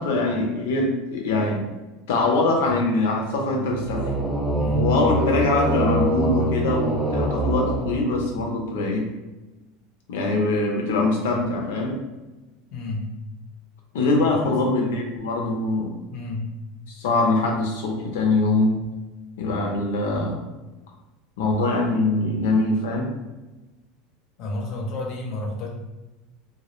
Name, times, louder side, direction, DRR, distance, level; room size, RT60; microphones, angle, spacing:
voice 1, 0.0-1.6 2.1-4.1 4.8-9.1 10.1-12.0 13.9-15.9 16.9-18.8 19.4-20.4 21.4-23.1, left 2 dB, 90° left, 1 dB, 0.5 m, -23 dB
sound 1, 3.7-8.5, right 1 dB, ahead, 0.5 m, -24 dB
voice 2, 4.6-4.9 12.7-13.1 14.3-14.6 16.1-16.5 24.4-25.7, left 2 dB, 45° left, 0 dB, 0.6 m, -30 dB
2.2 x 2.0 x 2.9 m, 1.1 s
supercardioid pair, 150°, 0 cm